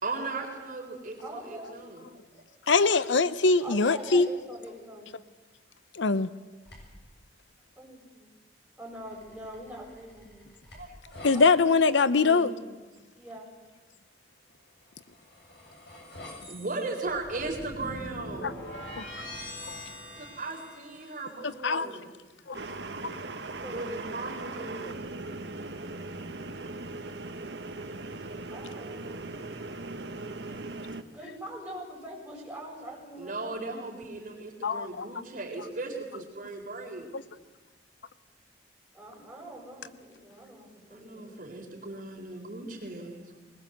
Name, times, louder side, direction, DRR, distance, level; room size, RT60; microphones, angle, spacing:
voice 1, 0.0-2.1 10.7-11.4 12.2-12.7 16.5-18.6 20.2-22.1 23.6-25.1 33.2-37.1 40.9-43.1, right 3 dB, 45° right, 1 dB, 4.1 m, -37 dB
voice 2, 1.2-1.7 3.6-5.1 7.8-8.3 8.8-10.4 11.3-11.8 13.2-13.5 23.6-23.8 28.5-29.4 31.1-33.9 38.9-41.3, right 1 dB, 5° right, -4 dB, 7.6 m, -44 dB
voice 3, 2.7-4.3 5.9-6.3 11.2-12.5 18.4-18.5 21.6-21.9 22.5-22.6 23.0-23.2 34.6-35.1 37.1-37.2, left 4 dB, 85° left, 15 dB, 0.8 m, -23 dB
sound 1, 6.6-7.1 9.0-11.4 14.9-21.3, left 1 dB, 65° left, 7.4 m, -44 dB
sound 2, 22.5-31.0, right 2 dB, 65° right, 1.3 m, -39 dB
21.5 x 20.5 x 8.0 m, 1.2 s
head